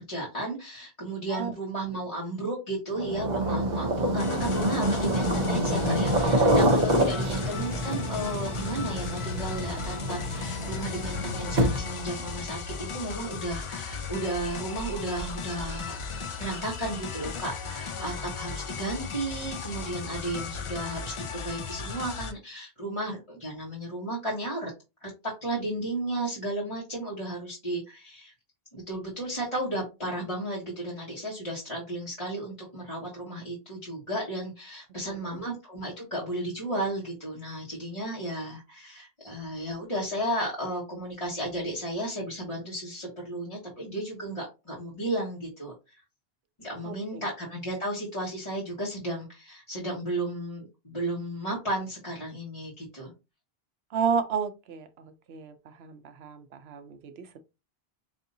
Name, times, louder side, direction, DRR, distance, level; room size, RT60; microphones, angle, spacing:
voice 1, 0.0-16.0 16.4-24.7 25.0-28.3 28.7-46.0 46.6-53.1, right 1 dB, 30° left, 1.3 m, -34 dB
sound 1, 2.9-12.1, right 1 dB, 50° right, 0.8 m, -27 dB
sound 2, 4.2-22.3, left 5 dB, 50° left, 0.4 m, -36 dB
voice 2, 46.8-47.2 53.9-57.4, right 6 dB, 80° right, 0.8 m, -32 dB
5.2 x 2.7 x 2.6 m
omnidirectional pair, 1.1 m